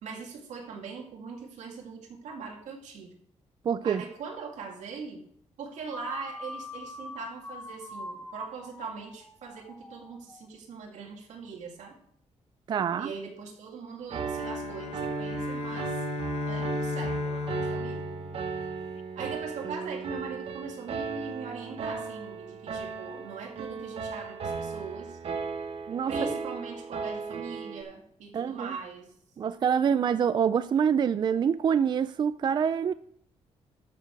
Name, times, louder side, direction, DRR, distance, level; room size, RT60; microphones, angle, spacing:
voice 1, 0.0-3.1 3.8-5.2 5.6-12.0 13.0-16.0 16.5-18.1 19.2-25.2 26.1-29.1, right 5 dB, 85° right, 2.4 m, -41 dB
voice 2, 3.7-4.0 12.7-13.1 25.9-26.3 28.3-28.8 29.4-32.9, right 7 dB, 40° right, 0.3 m, -26 dB
sound 1, 5.9-10.4, left 2 dB, 15° left, 1.5 m, -43 dB
Piano, 14.1-27.8, right 5 dB, 55° right, 1.0 m, -36 dB
sound 2, 14.3-19.0, left 8 dB, 60° left, 0.6 m, -36 dB
13.0 x 6.7 x 4.7 m
cardioid pair, 145°, 12 cm